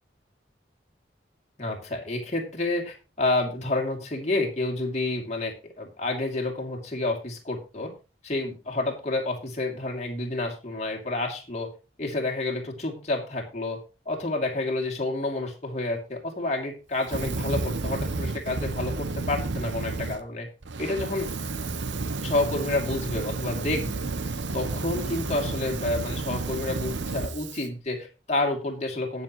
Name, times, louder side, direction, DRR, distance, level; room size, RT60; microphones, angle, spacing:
voice 1, 1.6-7.9 8.2-11.7 12.0-13.8 14.1-20.5 20.8-21.3 22.2-24.0 24.5-29.2, left 2 dB, 40° left, 1 dB, 2.7 m, -29 dB
Fire, 17.0-20.2 20.6-27.7, right 3 dB, 85° right, 0.9 m, -31 dB
19.0 x 6.9 x 3.0 m, 0.31 s
head